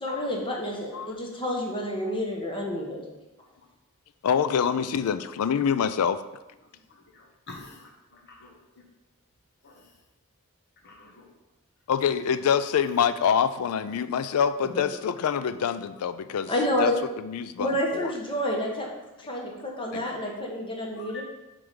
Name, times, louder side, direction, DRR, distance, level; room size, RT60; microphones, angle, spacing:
voice 1, 0.0-3.0 14.7-14.8 16.5-16.9 17.6-18.9 19.2-21.2, left 1 dB, 25° left, -1 dB, 1.2 m, -29 dB
voice 2, 4.2-6.2 11.9-16.5 16.8-18.1 19.9-20.0, left 7 dB, 75° left, 13 dB, 0.4 m, -26 dB
voice 3, 7.1-7.8 8.4-8.5 9.6-9.7 10.8-11.2 21.0-21.2, left 3 dB, 50° left, 0 dB, 1.0 m, -45 dB
7.0 x 3.4 x 5.1 m, 1.0 s
head